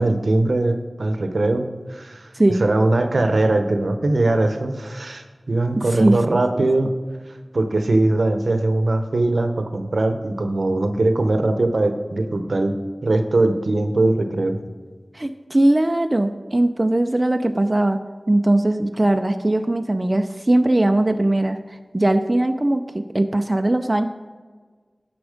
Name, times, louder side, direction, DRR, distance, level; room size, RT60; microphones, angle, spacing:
voice 1, 0.0-2.3 2.6-6.9 7.5-14.6, right 2 dB, 80° right, 7 dB, 0.8 m, -21 dB
voice 2, 5.8-6.6 15.1-24.0, right 1 dB, 30° right, 7 dB, 0.4 m, -20 dB
9.9 x 6.0 x 5.0 m, 1.5 s
wide cardioid pair, 60°, 0 cm